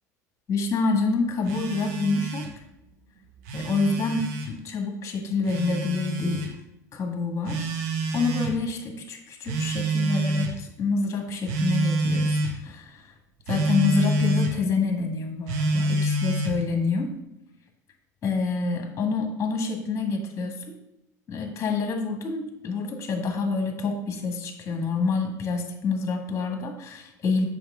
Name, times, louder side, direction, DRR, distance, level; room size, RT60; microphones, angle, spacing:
voice 1, 0.5-2.5 3.5-6.5 6.9-7.7 8.1-13.1 13.5-17.2 18.2-20.7 21.3-27.4, left 4 dB, 35° left, 3 dB, 1.7 m, -27 dB
Telephone, 1.5-2.6 3.3-4.5 5.5-6.5 7.5-8.6 9.5-10.6 11.5-12.6 13.5-14.6 15.5-16.6, right 2 dB, 70° right, 1.0 m, -27 dB
7.1 x 5.6 x 3.7 m, 0.87 s
hypercardioid pair, 85°, 9 cm